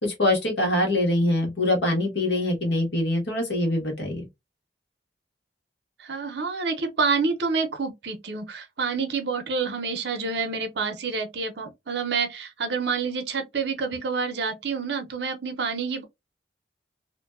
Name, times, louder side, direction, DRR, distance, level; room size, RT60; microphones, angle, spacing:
voice 1, 0.0-4.2, left 1 dB, 75° left, 1.2 m, -24 dB
voice 2, 6.0-16.0, right 4 dB, 75° right, 0.6 m, -28 dB
2.6 x 2.2 x 2.2 m
head